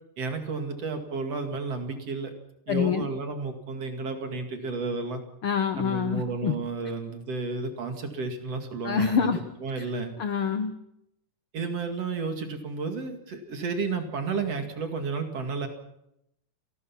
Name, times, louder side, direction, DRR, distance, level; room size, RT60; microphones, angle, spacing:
voice 1, 0.2-2.3 2.7-5.2 5.8-10.1 11.5-15.7, right 4 dB, 50° right, 5 dB, 3.1 m, -32 dB
voice 2, 2.7-3.0 5.4-6.5 8.8-9.4 10.2-10.7, left 6 dB, 70° left, 9 dB, 1.2 m, -26 dB
29.0 x 19.0 x 5.9 m, 0.81 s
omnidirectional pair, 4.0 m